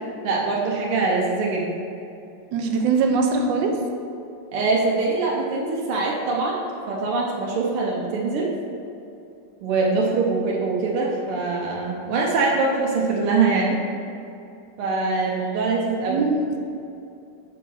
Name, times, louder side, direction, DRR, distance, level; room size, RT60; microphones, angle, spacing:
voice 1, 0.2-1.7 4.5-6.6 6.9-8.5 9.6-13.8 14.8-16.2, right 3 dB, 80° right, -2 dB, 1.7 m, -23 dB
voice 2, 2.5-3.8 16.1-16.7, right 4 dB, 65° right, 3 dB, 1.3 m, -22 dB
7.1 x 4.7 x 5.4 m, 2.7 s
omnidirectional pair, 2.4 m